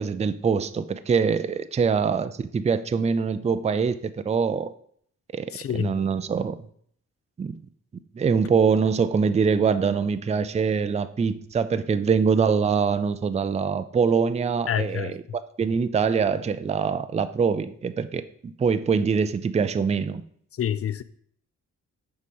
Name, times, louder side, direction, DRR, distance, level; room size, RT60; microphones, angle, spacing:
voice 1, 0.0-4.7 5.3-5.5 5.7-6.6 7.4-7.6 8.1-15.2 15.6-20.2, right 5 dB, 20° right, 0.4 m, -24 dB
voice 2, 5.5-5.9 14.7-15.2 20.6-21.0, left 9 dB, 50° left, 0.5 m, -27 dB
6.7 x 4.8 x 5.4 m
wide cardioid pair, 115°, 30 cm